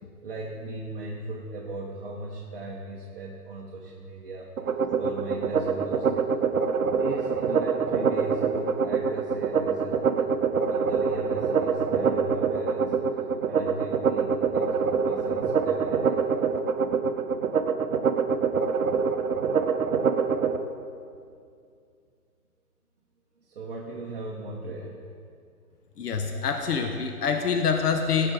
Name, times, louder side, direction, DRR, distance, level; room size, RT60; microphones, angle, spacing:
voice 1, 0.2-4.5 4.9-6.3 6.9-10.3 10.6-12.9 13.5-16.2 23.4-25.0, right 2 dB, 35° right, -2 dB, 1.0 m, -38 dB
sound 1, 4.6-20.6, right 6 dB, 65° right, 0.8 m, -25 dB
voice 2, 26.0-28.3, left 6 dB, 80° left, 5 dB, 1.1 m, -26 dB
17.0 x 6.7 x 3.9 m, 2.3 s
hypercardioid pair, 165°, 46 cm